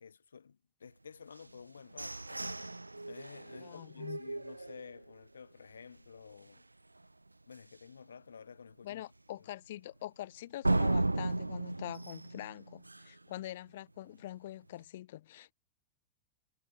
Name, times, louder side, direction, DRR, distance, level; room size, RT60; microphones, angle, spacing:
voice 1, 0.0-6.6 7.5-9.0 9.4-9.5, left 6 dB, 70° left, 5.0 m, -52 dB
sound 1, 1.4-5.2 5.7-5.8 6.2-6.6 7.0-7.1 7.5-7.6 10.6-13.3, right 2 dB, 85° right, 0.8 m, -35 dB
voice 2, 3.6-4.2 8.8-15.5, left 14 dB, 55° left, 2.5 m, -44 dB
figure-of-eight pair, 90°, 0 cm